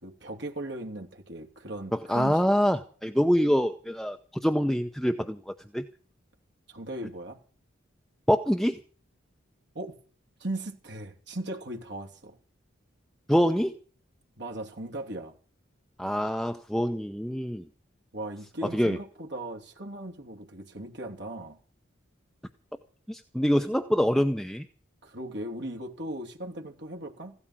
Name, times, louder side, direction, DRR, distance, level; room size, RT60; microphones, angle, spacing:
voice 1, 0.0-2.4 6.7-7.4 9.7-10.0 10.4-12.4 14.4-15.3 18.1-21.6 25.0-27.3, right 1 dB, 55° right, 2.8 m, -38 dB
voice 2, 1.9-5.8 8.3-8.8 13.3-13.8 16.0-17.6 18.7-19.0 23.1-24.6, equal, ahead, 0.7 m, -25 dB
16.0 x 12.5 x 6.0 m
head